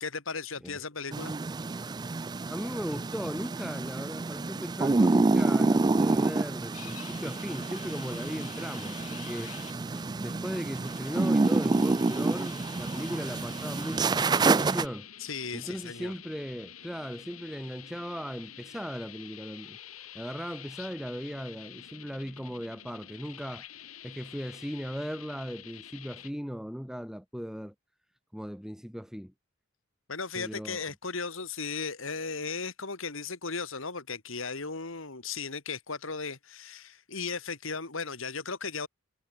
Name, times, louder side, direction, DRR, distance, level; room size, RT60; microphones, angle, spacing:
voice 1, 0.0-1.3 15.2-16.1 30.1-38.9, left 4 dB, 65° left, 2.2 m, -36 dB
sound 1, 1.1-14.9, right 3 dB, 20° right, 0.3 m, -28 dB
voice 2, 2.5-9.6 10.2-15.1 15.5-19.8 20.1-23.7 24.0-27.7 28.3-29.3 30.3-30.8, equal, ahead, 2.2 m, -37 dB
sound 2, 6.7-26.3, left 10 dB, 85° left, 6.8 m, -48 dB
head